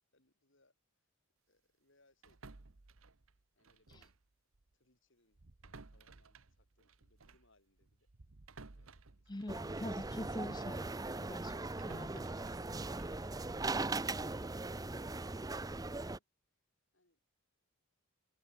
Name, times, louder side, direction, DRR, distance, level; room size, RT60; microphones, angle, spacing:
voice 1, 0.1-0.7 1.5-2.4 3.6-4.1 4.8-5.4 5.6-8.0 8.7-8.9 9.2-9.6 16.9-17.2, left 2 dB, 55° left, 5.8 m, -73 dB
sound 1, 2.2-4.3 4.5-4.7 5.3-10.6 11.0-14.1, right 3 dB, 70° right, 1.2 m, -58 dB
voice 2, 9.3-12.3, left 1 dB, 20° left, 0.7 m, -45 dB
sound 2, 9.5-16.2, right 2 dB, 15° right, 0.6 m, -39 dB
open air
head